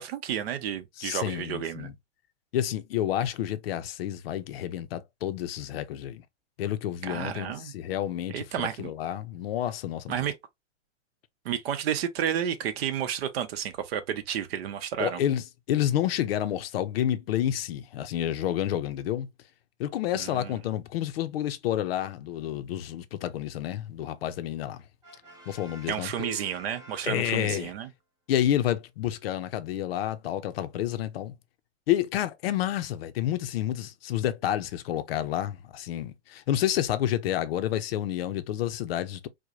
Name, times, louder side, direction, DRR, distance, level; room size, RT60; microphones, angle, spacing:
voice 1, 0.0-1.9 7.0-7.7 8.3-8.9 10.1-10.4 11.4-15.2 20.2-20.6 25.9-27.9, right 9 dB, 55° right, 0.8 m, -31 dB
voice 2, 1.0-1.9 2.5-6.2 6.6-8.4 8.8-10.3 15.0-19.3 19.8-24.8 25.5-26.4 27.1-27.7 28.3-31.3 31.9-39.3, left 11 dB, 55° left, 0.5 m, -29 dB
Brass instrument, 25.0-27.7, right 1 dB, 10° right, 0.5 m, -51 dB
4.6 x 2.2 x 2.4 m
hypercardioid pair, 135°, 37 cm